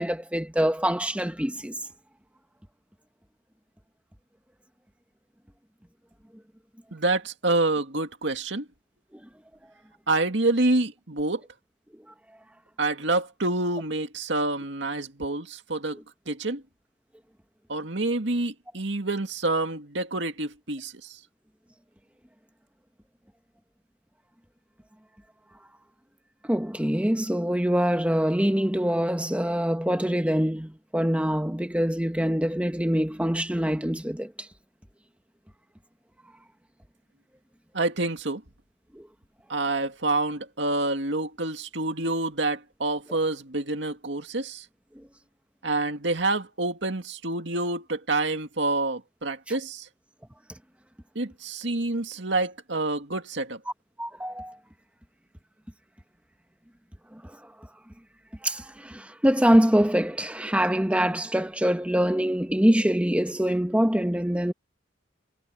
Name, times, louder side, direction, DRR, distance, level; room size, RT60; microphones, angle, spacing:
voice 1, 0.0-1.7 26.5-34.3 54.0-54.6 58.4-64.5, equal, 5° right, 1.3 m, -24 dB
voice 2, 6.9-8.7 10.1-11.4 12.8-16.0 16.3-16.6 17.7-21.2 37.7-38.4 39.5-44.7 45.6-49.9 51.2-53.6, right 2 dB, 70° right, 2.2 m, -27 dB
head